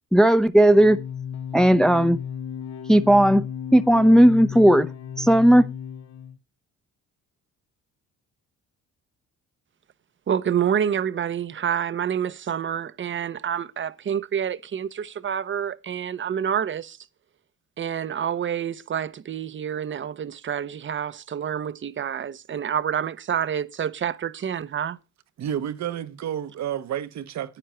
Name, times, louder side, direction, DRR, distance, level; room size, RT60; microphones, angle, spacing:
voice 1, 0.1-1.0 1.5-2.2 2.9-3.4 3.7-4.9 5.2-5.6, right 1 dB, ahead, 0.6 m, -15 dB
sound 1, 0.7-6.4, left 8 dB, 60° left, 0.8 m, -34 dB
voice 2, 10.3-17.0 17.8-25.0, right 8 dB, 40° right, 0.7 m, -28 dB
voice 3, 25.4-27.6, right 10 dB, 65° right, 1.0 m, -30 dB
9.9 x 9.1 x 4.4 m
cardioid pair, 90°, 30 cm